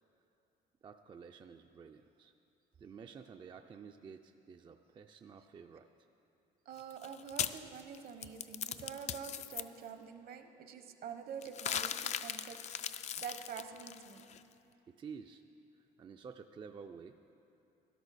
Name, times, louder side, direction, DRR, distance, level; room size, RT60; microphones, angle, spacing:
voice 1, 0.8-2.3 2.8-5.9 14.9-15.4 16.0-17.2, right 6 dB, 30° right, 6 dB, 0.4 m, -51 dB
voice 2, 6.7-14.3, right 7 dB, 60° right, 7 dB, 0.9 m, -47 dB
sound 1, 6.8-9.6 11.4-14.4, left 9 dB, 40° left, 0.4 m, -39 dB
12.5 x 11.5 x 4.1 m, 2.7 s
cardioid pair, 110°, 17 cm